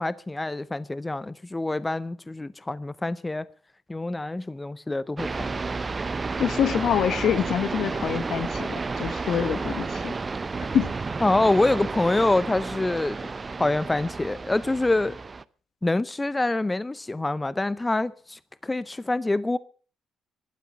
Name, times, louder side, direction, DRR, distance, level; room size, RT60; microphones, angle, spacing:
voice 1, 0.0-3.4 3.9-5.5 11.2-13.3 13.6-15.1 15.8-19.6, left 2 dB, 15° left, 0.6 m, -26 dB
sound 1, 5.2-15.4, right 4 dB, 30° right, 0.7 m, -31 dB
voice 2, 6.4-10.1 10.7-10.9, left 8 dB, 65° left, 1.2 m, -25 dB
14.5 x 12.5 x 6.9 m
cardioid pair, 90°, 0 cm